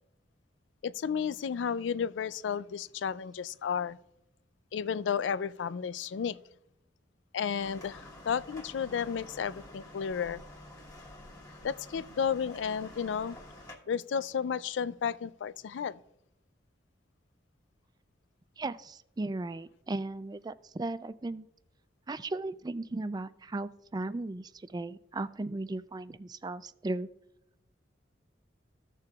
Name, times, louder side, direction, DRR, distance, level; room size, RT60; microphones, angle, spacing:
voice 1, 0.8-4.0 4.7-6.4 7.3-10.4 11.6-13.4 13.9-16.0, left 7 dB, 85° left, 0.4 m, -32 dB
sound 1, 7.6-13.8, left 1 dB, 20° left, 1.4 m, -49 dB
voice 2, 18.6-21.5 22.1-27.1, right 2 dB, 20° right, 0.4 m, -36 dB
15.5 x 6.7 x 2.4 m
head